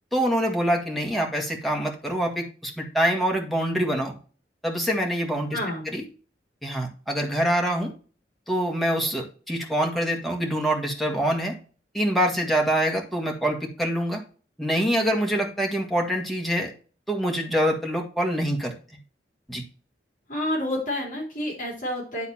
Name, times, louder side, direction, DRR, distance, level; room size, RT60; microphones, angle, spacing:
voice 1, 0.1-4.2 4.6-5.6 5.9-6.0 6.6-7.9 8.5-11.5 11.9-14.2 14.6-16.7 17.1-18.7 19.5-19.6, equal, ahead, 0 dB, 1.8 m, -25 dB
voice 2, 5.5-5.9 20.3-22.3, left 1 dB, 50° left, -3 dB, 3.5 m, -29 dB
11.0 x 4.0 x 4.3 m, 0.37 s
head